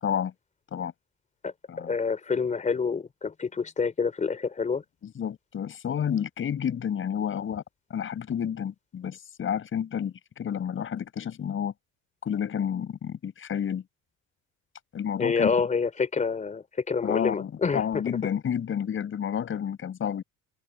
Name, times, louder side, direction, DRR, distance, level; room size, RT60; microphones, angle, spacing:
voice 1, 1.4-4.8 15.2-17.8, left 5 dB, 20° left, 3.6 m, -27 dB
voice 2, 5.0-7.6 7.9-11.7 12.2-13.8 14.9-15.5 17.0-20.2, left 8 dB, 35° left, 7.9 m, -30 dB
cardioid pair, 170°, 34 cm